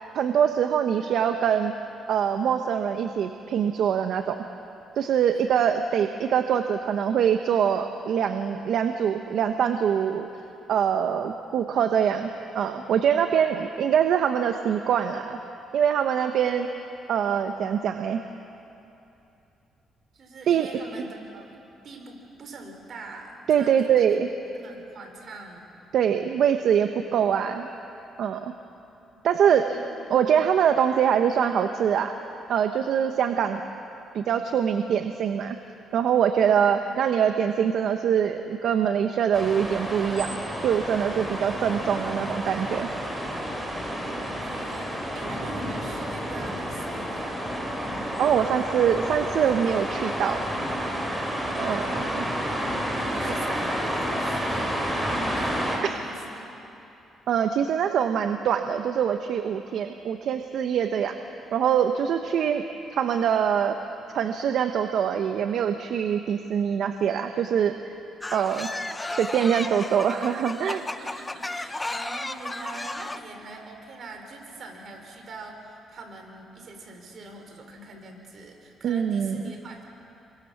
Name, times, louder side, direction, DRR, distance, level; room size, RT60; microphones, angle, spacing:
voice 1, 0.1-1.7 2.1-4.4 5.0-10.3 10.7-12.3 12.5-15.4 15.7-16.7 17.1-18.2 20.5-20.7 23.5-24.3 25.9-27.7 28.2-28.5 29.2-29.8 30.1-32.1 32.5-33.6 34.1-35.6 35.9-40.3 40.6-42.9 48.2-50.4 51.6-52.2 55.8-55.9 57.3-61.2 61.5-62.6 62.9-63.8 64.1-67.7 68.3-70.8 78.8-79.4, right 8 dB, 70° right, 6 dB, 1.2 m, -24 dB
voice 2, 13.2-13.8 20.1-24.2 24.5-25.7 29.1-30.0 36.4-36.9 43.9-47.4 51.8-52.5 52.9-55.0 55.4-56.5 71.0-79.8, right 3 dB, 55° right, 3 dB, 5.2 m, -43 dB
sound 1, 39.3-55.8, equal, 5° right, 5.9 m, -30 dB
sound 2, 68.2-73.2, left 2 dB, 15° left, 1.0 m, -34 dB
29.5 x 24.0 x 7.3 m, 2.8 s
cardioid pair, 90°, 0 cm